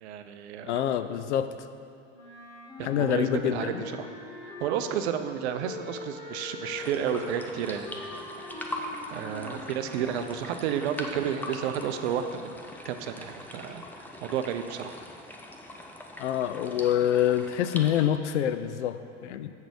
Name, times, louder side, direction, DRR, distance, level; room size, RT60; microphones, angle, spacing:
voice 1, 0.0-0.8 2.8-3.7 4.0-4.1 4.4-8.2 8.5-8.6 9.1-12.5 12.8-15.0, right 8 dB, 60° right, 8 dB, 0.6 m, -32 dB
voice 2, 0.6-1.5 2.8-3.8 16.2-19.5, left 10 dB, 65° left, 11 dB, 0.5 m, -26 dB
Wind instrument woodwind instrument, 2.1-5.0 5.6-10.4, left 3 dB, 45° left, 1.6 m, -42 dB
sound 1, 6.8-18.0, left 1 dB, 5° left, 0.4 m, -42 dB
7.2 x 4.0 x 6.4 m, 2.5 s
figure-of-eight pair, 80°, 38 cm